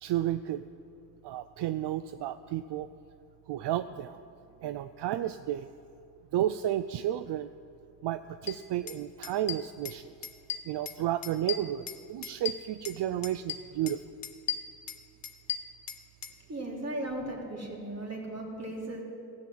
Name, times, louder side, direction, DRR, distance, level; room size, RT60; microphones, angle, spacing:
voice 1, 0.0-0.6 1.2-2.9 3.5-4.2 4.6-5.7 6.3-7.5 8.0-10.1 10.7-14.0, right 12 dB, 75° right, 12 dB, 0.5 m, -32 dB
sound 1, 8.5-8.6 8.9-9.0 9.2-10.0 10.2-11.0 11.2-13.0 13.2-14.0 14.2-16.3, left 8 dB, 55° left, 1.1 m, -36 dB
voice 2, 16.5-19.0, right 1 dB, 35° right, -1 dB, 3.5 m, -36 dB
14.0 x 8.9 x 7.6 m, 2.5 s
cardioid pair, 60°, 42 cm